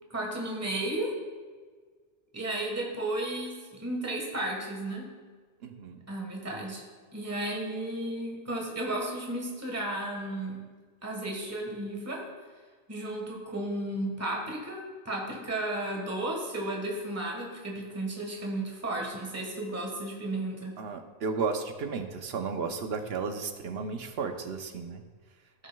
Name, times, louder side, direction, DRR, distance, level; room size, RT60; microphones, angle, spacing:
voice 1, 0.1-1.1 2.3-5.1 6.1-6.8 7.1-10.6 11.0-12.2 12.9-20.8, right 1 dB, 15° right, -1 dB, 1.3 m, -33 dB
voice 2, 5.6-6.0 20.8-25.0, right 5 dB, 70° right, 7 dB, 1.0 m, -33 dB
15.5 x 6.2 x 2.2 m, 1.5 s
omnidirectional pair, 1.1 m